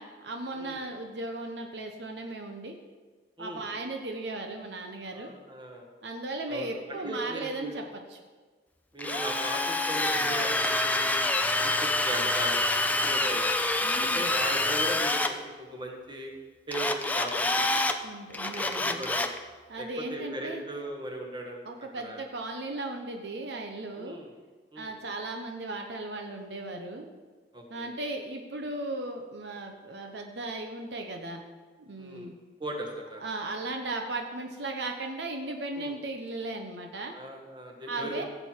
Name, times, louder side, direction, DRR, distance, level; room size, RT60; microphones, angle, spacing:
voice 1, 0.0-2.8 3.4-5.3 6.0-7.8 8.1-8.2 13.8-14.4 18.0-19.0 19.7-20.6 21.6-24.2 24.8-27.1 27.7-31.4 31.9-32.3 33.2-37.1 37.9-38.2, right 2 dB, 70° right, 4 dB, 1.0 m, -36 dB
voice 2, 5.1-5.9 6.5-7.8 8.9-11.2 11.6-13.5 14.0-16.3 16.7-17.8 18.6-19.3 19.8-21.6 22.0-22.2 24.0-24.3 24.7-24.9 27.5-27.9 32.0-32.3 32.6-33.2 35.8-35.9 37.1-38.2, right 1 dB, 25° right, 1 dB, 1.6 m, -38 dB
Drill, 9.0-15.3 16.7-18.0 18.3-19.4, left 2 dB, 10° left, 0.5 m, -27 dB
16.0 x 7.8 x 4.6 m, 1.4 s
head